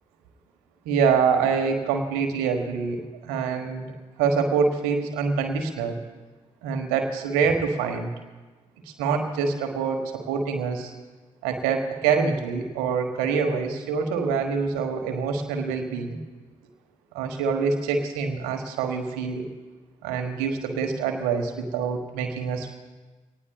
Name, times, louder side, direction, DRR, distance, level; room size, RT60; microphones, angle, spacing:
voice 1, 0.8-3.9 4.2-6.0 6.6-8.1 9.0-10.9 11.4-16.2 17.1-19.5 20.0-22.8, right 5 dB, 65° right, 5 dB, 1.4 m, -25 dB
23.0 x 18.5 x 2.4 m, 1.2 s
figure-of-eight pair, 40°, 17 cm